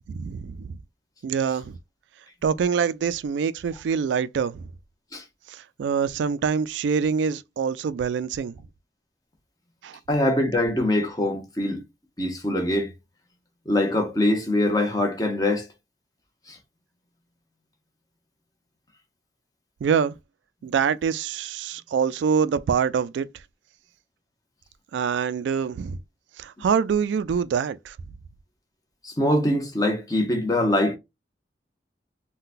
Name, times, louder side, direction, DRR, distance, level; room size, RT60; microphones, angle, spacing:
voice 1, 0.1-0.8 1.2-1.8 2.4-4.6 5.5-8.6 9.8-10.0 19.8-20.1 20.6-23.3 24.9-26.0 26.4-28.0, right 6 dB, 90° right, 0.3 m, -25 dB
voice 2, 10.1-11.8 12.2-12.9 13.7-15.7 16.5-16.6 29.0-31.0, left 1 dB, 20° left, 0.8 m, -23 dB
3.7 x 2.2 x 2.5 m
head